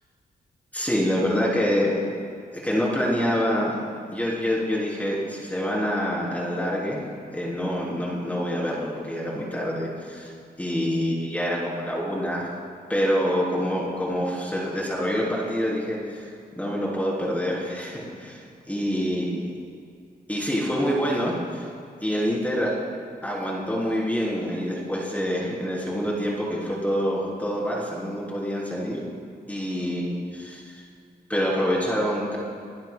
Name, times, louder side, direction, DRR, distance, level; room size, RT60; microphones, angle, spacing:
voice 1, 0.7-1.9 2.5-3.7 4.1-7.0 7.3-10.3 10.6-12.5 12.9-16.3 16.6-18.4 18.7-19.5 20.3-21.6 22.0-22.7 23.2-29.0 29.5-30.8 31.3-32.4, equal, 10° left, -5 dB, 3.4 m, -26 dB
22.5 x 11.0 x 2.3 m, 2.4 s
cardioid pair, 100°, 17 cm